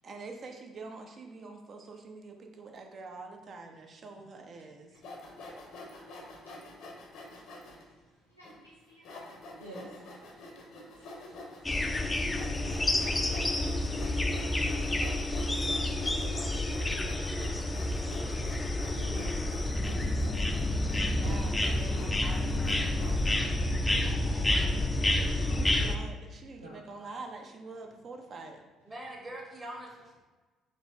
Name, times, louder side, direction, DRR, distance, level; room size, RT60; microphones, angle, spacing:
voice 1, 0.0-4.9 21.1-23.1 25.3-28.6, right 3 dB, 45° right, 3 dB, 0.6 m, -45 dB
Sawing, 5.0-7.8 8.4-8.5 9.0-23.4, left 1 dB, 60° left, 0.7 m, -46 dB
voice 2, 8.3-9.2 9.6-10.2 11.0-11.2 11.5-11.6 16.7-16.9 17.7-18.4 18.9-19.3 20.3-20.4 21.1-21.2 25.3-25.7 26.6-26.8, right 1 dB, 90° right, -8 dB, 0.7 m, -50 dB
sound 1, 11.6-26.0, left 1 dB, 15° left, 0.4 m, -29 dB
voice 3, 24.0-24.8 28.8-30.2, right 1 dB, 25° right, -1 dB, 1.2 m, -44 dB
4.0 x 3.1 x 3.5 m, 1.2 s
figure-of-eight pair, 50°, 0 cm